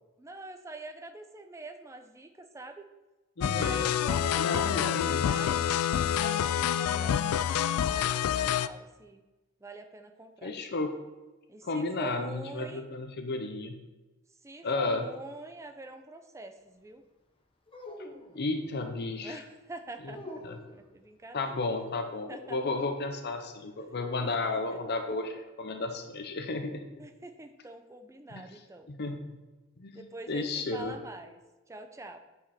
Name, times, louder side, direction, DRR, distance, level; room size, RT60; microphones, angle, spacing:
voice 1, 0.0-2.8 3.5-5.7 6.1-9.2 9.6-10.5 11.5-12.9 14.4-17.0 19.2-21.6 22.3-22.8 24.2-24.4 24.7-24.8 27.0-28.9 29.9-31.4 31.7-32.2, right 2 dB, 15° right, 6 dB, 0.5 m, -45 dB
sound 1, 3.4-8.7, left 9 dB, 85° left, 0.3 m, -27 dB
voice 2, 3.4-3.8 4.4-5.5 10.4-10.9 11.6-13.8 14.6-15.0 18.3-19.4 20.0-20.1 20.4-20.5 21.3-26.8 28.3-28.5 28.9-29.4 29.8-30.9, left 3 dB, 50° left, 6 dB, 0.7 m, -33 dB
sound 2, 17.7-18.7 20.0-20.9 23.9-25.0, left 1 dB, 25° left, 0.9 m, -46 dB
8.8 x 5.1 x 4.2 m, 1.1 s
head